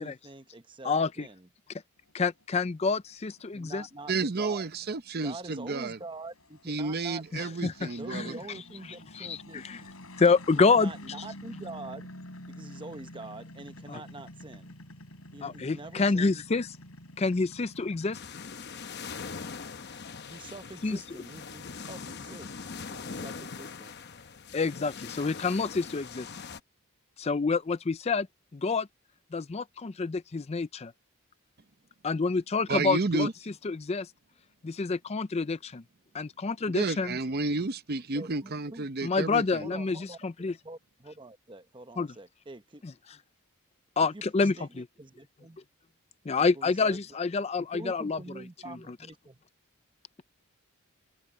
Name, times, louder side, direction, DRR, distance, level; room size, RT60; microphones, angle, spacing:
voice 1, 0.0-1.5 3.5-4.7 5.2-7.5 8.0-9.6 10.7-12.1 12.5-14.8 15.3-16.4 20.3-24.1 38.1-38.9 39.6-40.2 40.6-42.8 44.0-45.6 46.4-47.0 47.6-49.4, right 2 dB, 20° right, 1.0 m, -45 dB
voice 2, 0.8-1.3 2.1-3.8 7.3-8.3 9.1-9.8 10.2-10.9 13.9-14.0 15.4-16.7 17.2-18.2 20.8-21.0 24.5-26.3 27.2-28.3 28.5-28.9 29.3-30.9 32.0-33.3 33.6-34.1 34.6-35.8 36.1-37.2 39.0-40.5 42.0-42.1 44.0-44.8 46.3-48.2 48.7-49.0, left 4 dB, 30° left, 0.4 m, -28 dB
sound 1, 2.1-18.2, left 1 dB, 70° left, 7.8 m, -49 dB
voice 3, 4.1-6.0 6.7-8.4 32.7-33.3 36.7-39.7, right 3 dB, 45° right, 0.8 m, -31 dB
sound 2, 18.1-26.6, left 5 dB, 50° left, 0.9 m, -42 dB
head